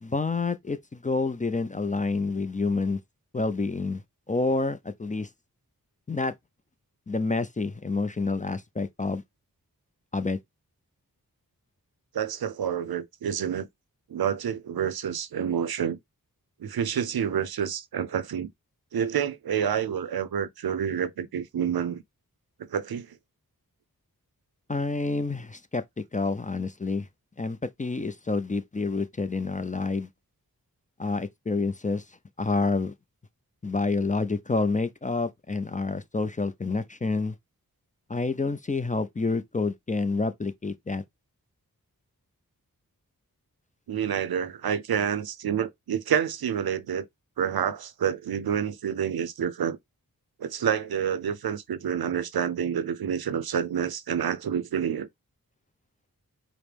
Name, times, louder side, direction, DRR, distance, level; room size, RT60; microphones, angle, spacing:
voice 1, 0.0-3.0 3.3-4.0 4.3-5.3 6.1-6.3 7.1-9.2 10.1-10.4 24.7-25.8 26.1-27.1 27.4-30.1 31.0-32.0 32.4-32.9 33.6-37.4 38.1-41.0, left 3 dB, 20° left, 0.4 m, -28 dB
voice 2, 12.1-13.7 14.1-16.0 16.6-18.5 18.9-22.0 22.6-23.2 43.9-47.1 47.4-49.8 50.4-55.1, right 8 dB, 80° right, 0.5 m, -28 dB
4.9 x 2.1 x 3.2 m
cardioid pair, 50°, 36 cm